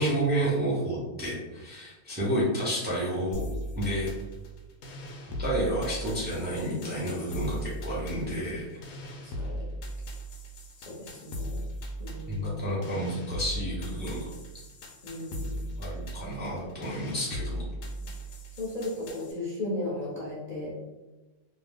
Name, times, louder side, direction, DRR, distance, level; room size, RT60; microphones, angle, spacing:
voice 1, 0.0-3.5 3.8-4.1 5.4-8.7 12.3-14.3 15.8-17.6, right 1 dB, 10° right, -6 dB, 0.5 m, -30 dB
sound 1, 3.3-19.3, equal, 90° left, 1.0 m, -38 dB
voice 2, 9.2-9.6 10.8-11.6 12.0-12.7 15.0-15.6 18.6-20.8, left 2 dB, 40° left, -7 dB, 0.6 m, -36 dB
2.7 x 2.2 x 3.4 m, 1.1 s
omnidirectional pair, 1.3 m